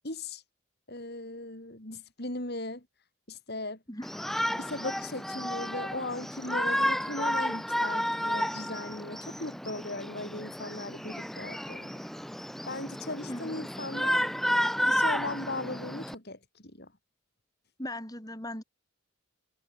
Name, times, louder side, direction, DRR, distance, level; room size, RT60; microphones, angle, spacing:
voice 1, 0.0-0.4 0.9-2.8 3.3-3.8 4.6-11.9 12.7-14.2 14.8-16.4 16.8-16.9, left 2 dB, 50° left, 4.0 m, -38 dB
voice 2, 3.9-4.2 13.2-13.5 14.0-14.1 17.8-18.6, left 1 dB, 15° left, 4.8 m, -39 dB
Shout, 4.0-16.1, equal, ahead, 1.2 m, -31 dB
head